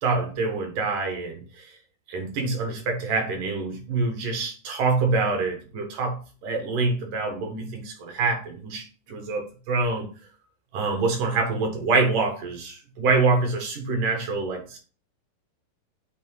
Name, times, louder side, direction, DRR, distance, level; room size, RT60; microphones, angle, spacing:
voice 1, 0.0-1.8 2.1-10.1 10.7-14.8, right 3 dB, 65° right, 3 dB, 2.5 m, -26 dB
8.7 x 3.0 x 4.5 m, 0.36 s
omnidirectional pair, 4.6 m